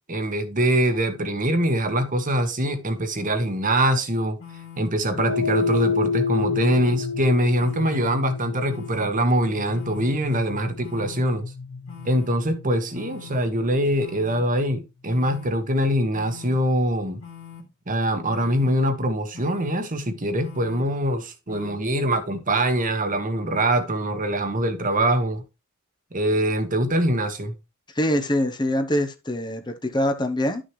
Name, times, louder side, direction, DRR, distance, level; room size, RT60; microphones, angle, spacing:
voice 1, 0.1-4.4 4.8-11.5 12.0-17.2 17.9-25.4 26.1-27.5, right 1 dB, 40° right, 1.4 m, -23 dB
sound 1, 4.4-4.8 5.5-5.9 6.5-6.9 7.6-8.0 8.7-9.1 9.7-10.1 10.8-11.2 11.9-12.3 12.9-13.3 14.0-14.4 15.1-15.5 16.1-16.5 17.2-17.6 18.3-18.7 19.3-19.7 20.4-20.8 21.5-21.7, left 8 dB, 65° left, 2.7 m, -42 dB
sound 2, 5.1-13.6, left 4 dB, 90° left, 1.0 m, -29 dB
voice 2, 27.9-30.6, left 1 dB, 20° left, 0.9 m, -24 dB
12.0 x 6.4 x 3.2 m
head